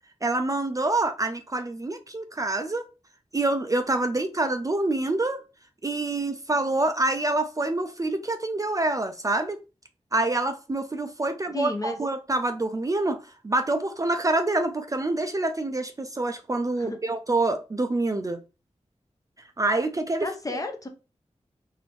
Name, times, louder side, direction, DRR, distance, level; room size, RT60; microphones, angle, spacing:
voice 1, 0.2-2.9 3.3-5.4 5.8-9.6 10.1-18.4 19.6-20.6, right 2 dB, 30° right, 0.3 m, -26 dB
voice 2, 11.5-12.0 16.8-17.0 20.2-20.9, left 2 dB, 30° left, 0.6 m, -32 dB
2.9 x 2.6 x 3.3 m
wide cardioid pair, 70°, 12 cm